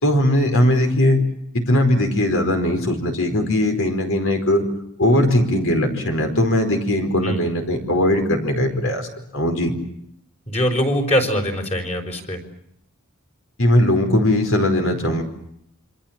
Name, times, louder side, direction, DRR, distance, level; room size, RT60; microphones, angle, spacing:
voice 1, 0.0-1.2 1.5-4.6 5.0-9.1 9.3-9.7 13.6-15.2, left 1 dB, 65° left, 5 dB, 4.7 m, -19 dB
voice 2, 10.5-12.4, equal, 30° left, 4 dB, 5.2 m, -22 dB
27.5 x 25.0 x 7.5 m, 0.75 s
head